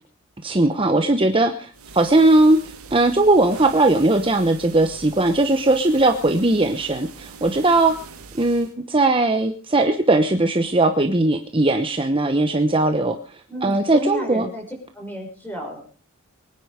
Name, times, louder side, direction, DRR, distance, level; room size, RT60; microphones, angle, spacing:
voice 1, 0.4-7.9 8.3-14.4, right 2 dB, 25° right, 6 dB, 1.0 m, -19 dB
sound 1, 1.7-8.7, right 5 dB, 90° right, 2.2 m, -42 dB
voice 2, 13.5-14.6 14.9-15.8, right 1 dB, 10° left, 1 dB, 6.0 m, -31 dB
23.5 x 10.0 x 5.1 m, 0.41 s
head